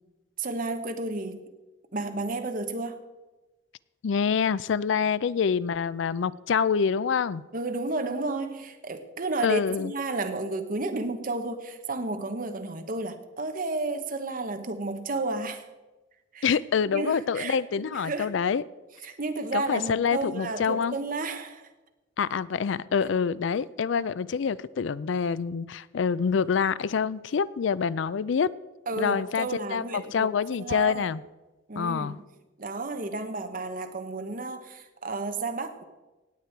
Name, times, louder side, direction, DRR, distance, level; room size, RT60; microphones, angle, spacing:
voice 1, 0.4-1.4 1.9-3.0 7.5-15.6 16.3-16.5 16.9-17.6 17.9-18.3 19.0-21.7 28.9-31.0 31.7-32.2 32.6-35.8, right 2 dB, 45° right, 8 dB, 1.1 m, -32 dB
voice 2, 4.0-7.4 9.4-9.9 16.4-18.6 19.5-21.0 22.2-28.5 29.0-31.2 31.8-32.2, left 6 dB, 70° left, 19 dB, 0.4 m, -26 dB
18.0 x 8.3 x 4.5 m, 1.1 s
head